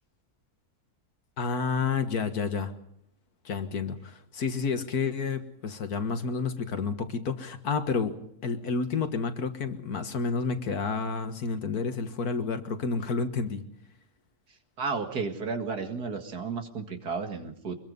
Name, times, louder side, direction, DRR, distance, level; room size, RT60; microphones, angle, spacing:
voice 1, 1.4-2.7 3.5-13.6, left 5 dB, 75° left, 8 dB, 2.0 m, -30 dB
voice 2, 14.8-17.8, right 4 dB, 85° right, 6 dB, 2.6 m, -33 dB
24.5 x 21.5 x 5.4 m, 0.71 s
omnidirectional pair, 1.6 m